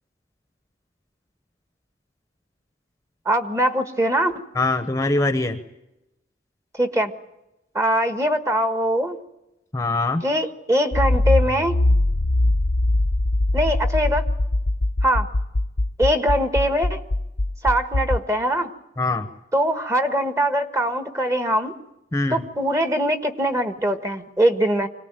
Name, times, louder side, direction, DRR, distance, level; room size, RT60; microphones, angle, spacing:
voice 1, 3.2-4.3 6.8-7.1 7.7-9.2 10.2-11.8 13.5-14.2 15.0-15.3 16.0-17.0 17.6-18.7 19.5-21.7 22.3-24.9, equal, 15° right, 8 dB, 1.4 m, -22 dB
voice 2, 4.5-5.6 9.7-10.2 19.0-19.3 22.1-22.4, left 2 dB, 15° left, 9 dB, 1.0 m, -22 dB
Accelerating revving vroom, 10.9-18.2, left 1 dB, 65° left, 0.8 m, -21 dB
25.5 x 19.0 x 9.0 m, 0.93 s
head